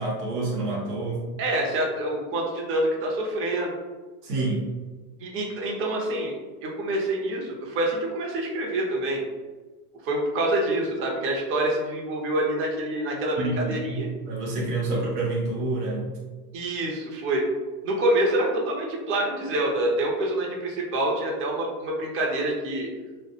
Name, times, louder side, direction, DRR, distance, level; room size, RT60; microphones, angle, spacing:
voice 1, 0.0-1.2 4.2-4.6 13.4-14.0 14.3-16.1, right 2 dB, 85° right, -3 dB, 0.9 m, -28 dB
voice 2, 1.4-3.7 5.2-6.3 6.6-9.2 10.0-14.1 14.9-15.0 16.5-17.4 17.8-22.9, right 1 dB, 30° right, -1 dB, 0.5 m, -26 dB
2.2 x 2.1 x 2.8 m, 1.3 s
hypercardioid pair, 100°, 47 cm